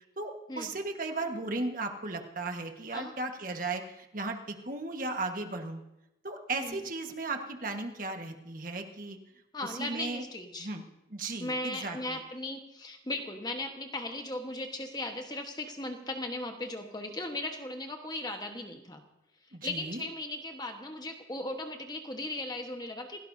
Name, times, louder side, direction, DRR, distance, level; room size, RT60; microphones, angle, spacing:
voice 1, 0.2-5.8 6.2-9.2 9.6-10.2 10.6-10.8 11.1-12.2 19.5-20.0, right 2 dB, 45° right, 4 dB, 1.5 m, -36 dB
voice 2, 9.5-10.7 11.4-19.0 19.6-23.2, left 2 dB, 20° left, 4 dB, 1.2 m, -37 dB
28.0 x 17.0 x 2.7 m, 0.91 s
head